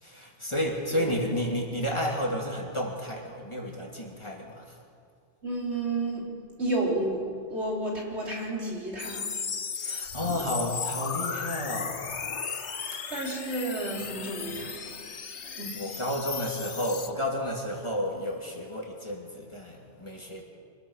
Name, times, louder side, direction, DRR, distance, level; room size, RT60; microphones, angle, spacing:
voice 1, 0.0-4.8 9.7-12.0 12.9-13.0 15.7-20.4, equal, 25° left, -1 dB, 2.9 m, -32 dB
voice 2, 0.8-1.2 5.4-9.3 13.1-15.0 15.4-15.8, right 2 dB, 65° right, -2 dB, 4.2 m, -32 dB
sound 1, 9.0-17.1, left 6 dB, 75° left, 1.5 m, -35 dB
26.0 x 19.0 x 6.6 m, 2.4 s
omnidirectional pair, 1.2 m